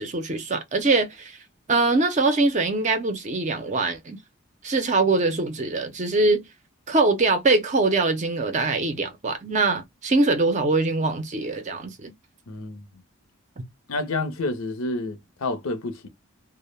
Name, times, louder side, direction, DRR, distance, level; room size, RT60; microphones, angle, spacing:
voice 1, 0.0-1.4 1.7-4.2 4.6-6.4 6.9-12.1, right 3 dB, 35° right, 0.5 m, -23 dB
voice 2, 12.5-12.8 13.9-16.1, left 2 dB, 75° left, 0.6 m, -29 dB
2.1 x 2.1 x 3.1 m
head